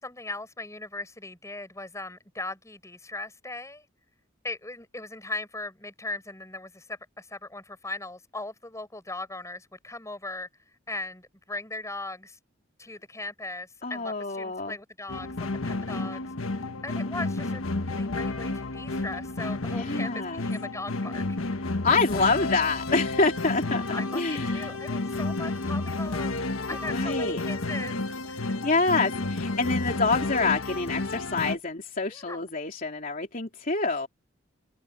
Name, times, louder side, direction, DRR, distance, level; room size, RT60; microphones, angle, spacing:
voice 1, 0.0-3.8 4.4-10.5 10.9-12.4 12.8-21.4 23.9-28.0 28.3-28.5 32.1-32.4, left 2 dB, 15° left, 7.7 m, -39 dB
voice 2, 13.8-14.8 19.7-20.4 21.8-24.7 26.7-27.4 28.6-34.1, left 3 dB, 45° left, 3.0 m, -27 dB
sound 1, 15.1-31.6, left 2 dB, 90° left, 1.4 m, -31 dB
open air
head